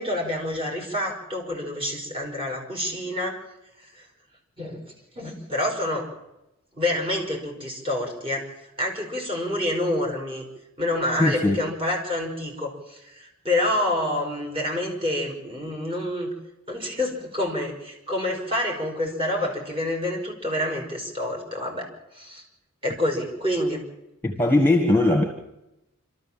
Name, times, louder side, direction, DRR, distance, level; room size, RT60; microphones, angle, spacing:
voice 1, 0.0-3.4 4.6-4.8 5.2-6.1 6.8-8.5 8.8-10.4 10.8-16.3 16.7-22.4 22.8-23.8, left 1 dB, 25° right, -1 dB, 5.5 m, -27 dB
voice 2, 11.2-11.7 24.2-25.2, left 2 dB, 10° left, 3 dB, 1.7 m, -20 dB
28.0 x 13.5 x 7.5 m, 0.92 s
head